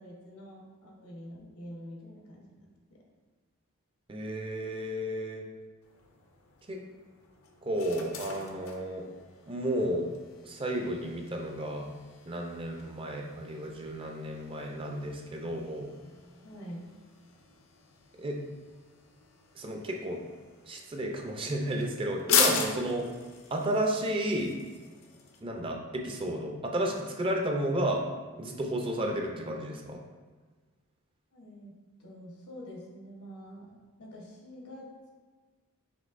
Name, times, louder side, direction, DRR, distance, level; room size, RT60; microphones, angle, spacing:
voice 1, 0.0-2.7 16.4-16.9 31.3-31.7 32.0-34.9, equal, 85° left, -2 dB, 1.1 m, -46 dB
voice 2, 4.1-5.5 6.7-6.8 7.6-9.1 9.5-10.1 10.4-11.9 12.3-15.9 18.1-18.4 19.6-20.2 20.6-23.1 23.5-24.5 25.4-28.0 28.4-30.0, right 1 dB, 25° right, 1 dB, 0.4 m, -32 dB
sound 1, 5.8-25.4, left 6 dB, 65° left, 0.5 m, -38 dB
5.2 x 3.3 x 2.5 m, 1.4 s
head